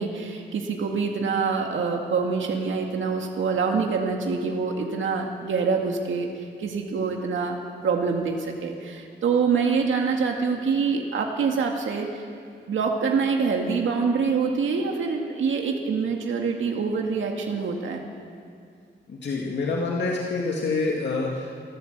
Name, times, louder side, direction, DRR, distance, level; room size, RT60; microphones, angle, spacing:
voice 1, 0.0-7.6 7.8-12.3 12.7-18.0, right 5 dB, 80° right, 2 dB, 2.0 m, -25 dB
voice 2, 19.1-21.5, left 3 dB, 65° left, -2 dB, 2.2 m, -27 dB
25.5 x 14.5 x 8.0 m, 2.3 s
wide cardioid pair, 165°, 20 cm